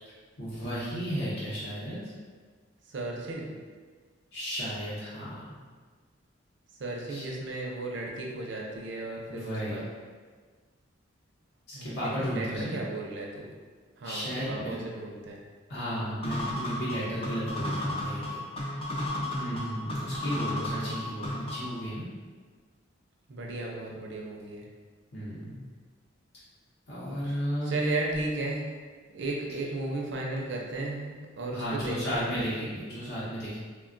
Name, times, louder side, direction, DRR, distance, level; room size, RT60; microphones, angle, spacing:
voice 1, 0.4-2.0 4.3-5.6 7.1-7.2 9.3-9.8 11.7-12.8 14.0-14.8 15.7-18.4 19.4-22.1 25.1-25.6 26.9-27.7 31.5-33.6, equal, 55° left, -9 dB, 0.7 m, -34 dB
voice 2, 2.9-3.6 6.8-9.8 11.7-13.5 14.0-15.4 23.3-24.7 27.6-28.7 29.1-32.4, right 2 dB, 60° right, -1 dB, 0.5 m, -35 dB
sound 1, 16.2-21.8, left 1 dB, 30° left, 0.4 m, -33 dB
3.2 x 2.2 x 2.4 m, 1.5 s
head